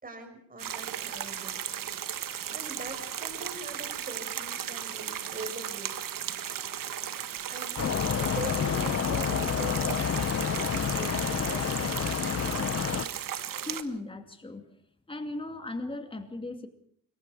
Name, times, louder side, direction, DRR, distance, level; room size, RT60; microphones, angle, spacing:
voice 1, 0.0-1.6 2.5-6.0 7.5-12.7, right 2 dB, 25° right, 6 dB, 5.1 m, -42 dB
sound 1, 0.6-13.8, right 10 dB, 70° right, 1.5 m, -36 dB
sound 2, 7.8-13.1, left 8 dB, 40° left, 0.9 m, -29 dB
voice 2, 13.7-14.7 15.1-16.7, left 2 dB, 15° left, 7 dB, 2.5 m, -37 dB
26.0 x 23.0 x 4.9 m, 0.65 s
wide cardioid pair, 150°, 34 cm